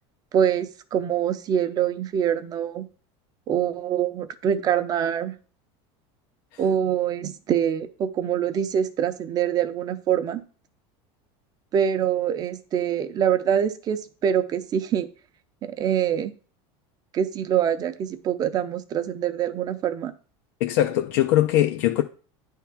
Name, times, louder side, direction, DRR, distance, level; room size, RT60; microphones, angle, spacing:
voice 1, 0.3-2.9 3.5-5.3 6.6-10.4 11.7-15.1 15.6-16.3 17.1-20.1, right 9 dB, 30° right, 0.6 m, -24 dB
voice 2, 20.6-22.0, left 13 dB, 65° left, 0.5 m, -21 dB
9.4 x 3.6 x 5.8 m
supercardioid pair, 160°, 14 cm